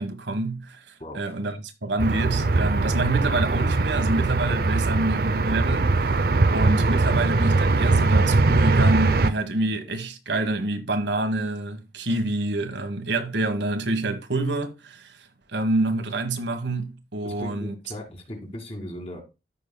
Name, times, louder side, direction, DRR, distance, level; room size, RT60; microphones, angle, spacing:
voice 1, 0.0-6.2 6.5-17.7, right 2 dB, 80° right, 1.3 m, -27 dB
voice 2, 1.0-1.3 17.2-19.2, left 1 dB, 35° left, 2.2 m, -37 dB
sound 1, 2.0-9.3, right 3 dB, 55° right, 0.5 m, -21 dB
14.0 x 5.5 x 2.2 m
head